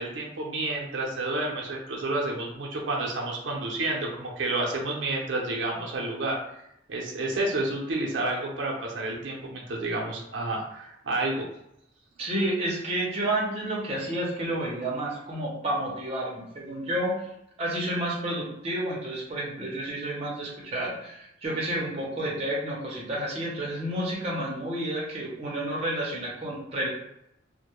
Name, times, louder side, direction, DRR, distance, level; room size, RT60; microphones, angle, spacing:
voice 1, 0.0-6.4 6.9-11.5, right 2 dB, 80° right, -2 dB, 0.5 m, -30 dB
voice 2, 12.2-17.2 17.6-26.9, right 1 dB, 35° right, -4 dB, 0.6 m, -30 dB
2.2 x 2.1 x 2.9 m, 0.79 s
head